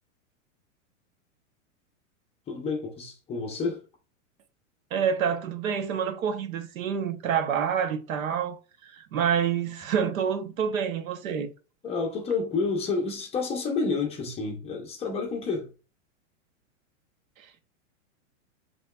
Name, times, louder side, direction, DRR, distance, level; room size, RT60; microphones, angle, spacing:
voice 1, 2.5-3.8 11.8-15.7, left 4 dB, 15° left, 0.7 m, -29 dB
voice 2, 4.9-11.5 17.4-17.6, right 7 dB, 80° right, 0.9 m, -28 dB
5.3 x 3.0 x 2.2 m
hypercardioid pair, 140°, 40 cm